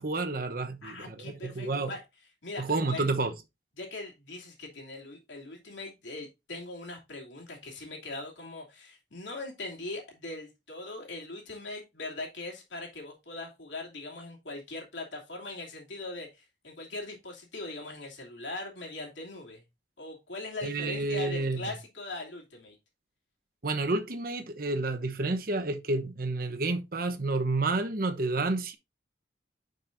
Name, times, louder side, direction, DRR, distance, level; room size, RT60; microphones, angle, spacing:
voice 1, 0.0-1.9 2.6-3.3 20.6-21.7 23.6-28.7, right 2 dB, 50° right, 1.0 m, -30 dB
voice 2, 0.8-2.0 2.4-3.0 3.8-19.6 20.0-22.8, left 2 dB, 85° left, 2.8 m, -41 dB
10.5 x 5.3 x 2.6 m
head